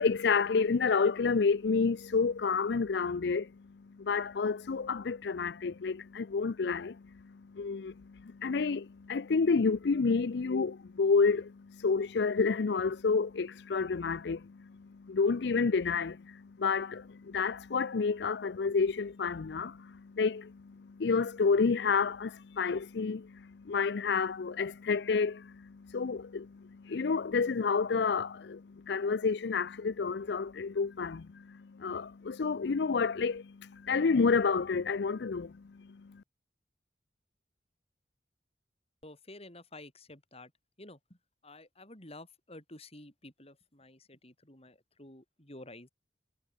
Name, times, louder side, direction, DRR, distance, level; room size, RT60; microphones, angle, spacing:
voice 1, 0.0-36.2, left 5 dB, 65° left, 0.5 m, -30 dB
voice 2, 39.0-40.5 40.8-41.0 41.4-45.9, left 2 dB, 35° left, 7.2 m, -51 dB
head